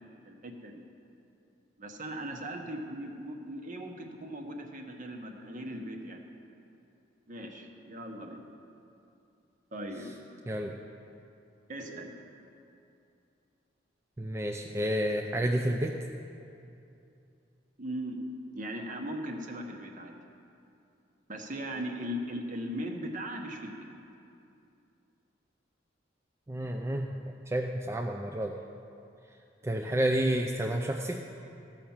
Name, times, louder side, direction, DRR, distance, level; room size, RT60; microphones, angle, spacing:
voice 1, 0.2-0.7 1.8-6.2 7.3-8.4 9.7-10.1 11.7-12.1 17.8-18.2 18.5-20.2 21.3-23.9, equal, 45° right, 3 dB, 1.2 m, -38 dB
voice 2, 10.5-10.8 14.2-16.0 26.5-27.1 27.5-28.5 29.6-31.2, right 1 dB, 15° right, 2 dB, 0.4 m, -30 dB
14.0 x 5.9 x 7.2 m, 2.7 s
head